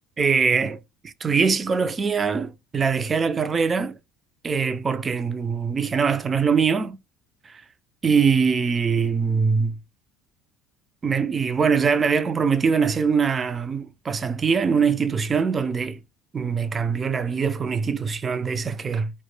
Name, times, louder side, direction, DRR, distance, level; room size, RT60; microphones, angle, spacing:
voice 1, 0.2-0.8 1.2-4.0 4.4-7.0 7.4-7.6 8.0-9.8 11.0-16.0 16.3-19.1, right 5 dB, 25° right, 0.3 m, -22 dB
2.1 x 2.0 x 3.0 m
cardioid pair, 115°, 0 cm